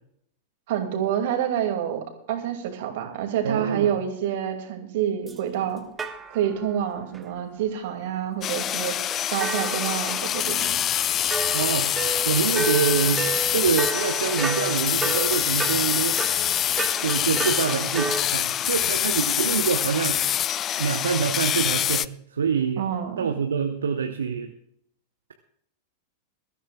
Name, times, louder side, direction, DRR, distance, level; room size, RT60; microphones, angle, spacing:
voice 1, 0.7-5.8 6.3-9.1 9.3-10.8 22.8-23.3, right 9 dB, 50° right, 5 dB, 2.3 m, -27 dB
voice 2, 3.4-3.9 11.5-16.5 17.0-20.4 20.8-22.8 23.2-24.5, right 6 dB, 70° right, 6 dB, 0.8 m, -26 dB
sound 1, 5.3-5.4 6.0-6.8 7.1-7.2 9.1-10.7 11.3-18.2, right 4 dB, 15° right, 1.2 m, -32 dB
sound 2, 8.4-22.1, left 11 dB, 30° left, 0.4 m, -25 dB
22.0 x 13.5 x 2.4 m, 0.70 s
figure-of-eight pair, 90°, 0 cm